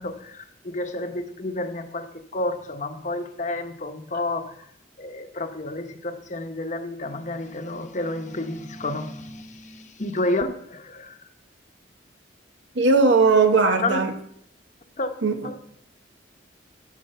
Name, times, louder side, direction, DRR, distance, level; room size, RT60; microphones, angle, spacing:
voice 1, 0.0-2.1 2.3-4.6 5.0-11.2 13.8-14.0 15.0-15.1 15.4-15.6, left 2 dB, 40° left, 0.9 m, -30 dB
voice 2, 12.7-14.1 15.2-15.6, right 4 dB, 70° right, 0.9 m, -19 dB
11.5 x 4.3 x 6.7 m
head